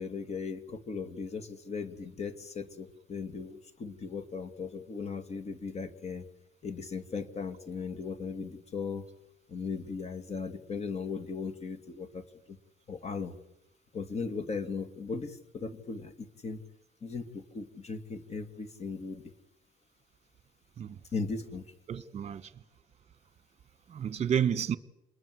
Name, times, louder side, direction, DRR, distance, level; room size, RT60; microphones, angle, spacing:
voice 1, 0.0-6.3 6.6-9.1 9.5-12.6 12.9-13.3 13.9-16.6 17.0-19.3 21.1-21.6, left 5 dB, 40° left, 2.6 m, -37 dB
voice 2, 21.9-22.5 23.9-24.8, right 8 dB, 40° right, 1.5 m, -30 dB
28.0 x 21.0 x 7.9 m
cardioid pair, 110°, 17 cm